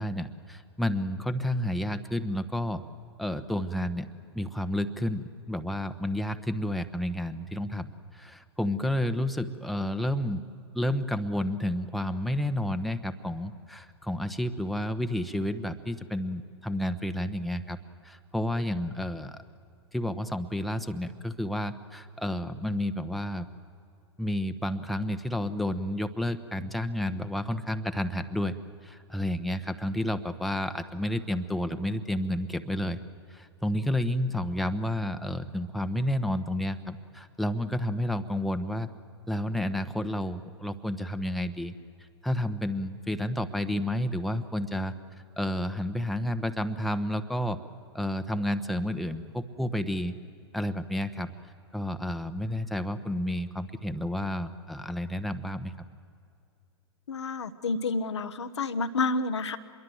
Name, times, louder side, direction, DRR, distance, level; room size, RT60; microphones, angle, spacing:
voice 1, 0.0-2.8 3.2-4.1 4.3-10.4 10.7-17.8 18.0-19.4 19.9-23.5 24.2-28.5 28.8-33.0 33.3-38.9 39.3-41.7 42.0-44.9 45.4-47.6 47.9-50.1 50.5-51.3 51.7-55.9, left 1 dB, ahead, 8 dB, 1.0 m, -30 dB
voice 2, 57.1-59.6, left 3 dB, 85° left, 9 dB, 1.2 m, -29 dB
25.5 x 22.5 x 7.8 m, 2.4 s
hypercardioid pair, 105°, 14 cm